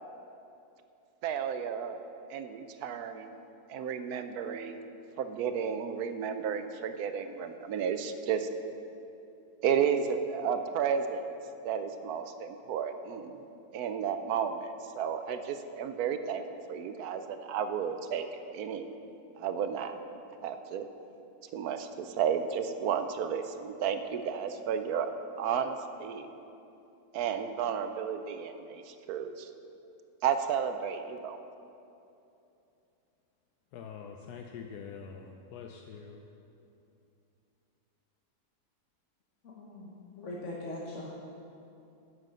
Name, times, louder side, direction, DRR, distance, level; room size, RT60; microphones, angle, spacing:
voice 1, 1.2-2.0 2.3-3.3 3.7-4.8 5.2-8.5 9.6-11.3 11.6-13.4 13.7-18.3 18.5-18.9 19.4-19.9 20.4-20.9 21.5-25.1 25.4-26.3 27.1-29.5 30.2-31.4, right 7 dB, 75° right, 9 dB, 1.2 m, -32 dB
voice 2, 33.7-36.3, left 6 dB, 85° left, 3 dB, 1.2 m, -45 dB
voice 3, 39.4-41.2, left 1 dB, 55° left, -3 dB, 1.3 m, -41 dB
10.5 x 6.5 x 7.5 m, 2.8 s
omnidirectional pair, 1.6 m